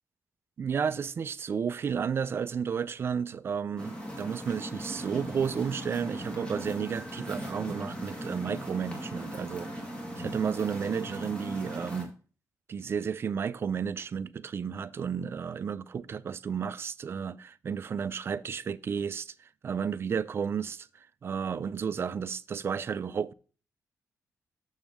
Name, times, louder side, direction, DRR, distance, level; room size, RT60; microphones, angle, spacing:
voice 1, 0.6-9.7 10.2-12.1 12.7-20.9 21.2-23.3, right 7 dB, 40° right, 0.3 m, -32 dB
sound 1, 3.8-12.0, equal, 15° left, 2.0 m, -38 dB
7.2 x 7.0 x 3.5 m
wide cardioid pair, 135°, 6 cm